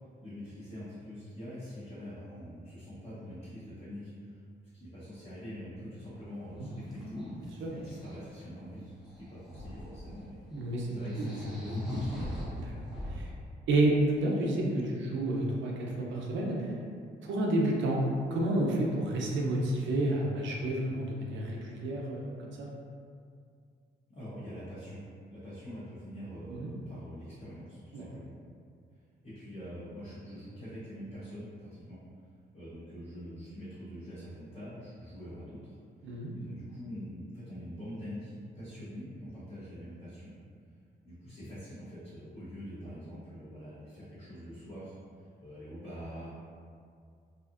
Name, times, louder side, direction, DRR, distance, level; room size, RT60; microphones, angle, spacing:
voice 1, 0.2-4.4 4.8-7.2 7.7-12.3 24.1-25.0 25.3-28.3 29.2-32.0 32.5-35.8 36.0-40.3 41.0-46.4, equal, 30° left, -13 dB, 0.8 m, -45 dB
sound 1, 6.2-6.3 6.6-8.2 9.1-10.2 10.5-10.6 10.9-13.3, left 1 dB, 5° right, 0.6 m, -38 dB
voice 2, 10.6-10.9 11.2-11.3 12.6-12.7 13.1-13.3 13.7-16.7 17.2-18.0 18.3-22.7 26.5-26.7 27.9-28.1 36.0-36.3, right 1 dB, 90° right, -2 dB, 0.5 m, -30 dB
2.7 x 2.4 x 2.4 m, 2.2 s
cardioid pair, 130°, 19 cm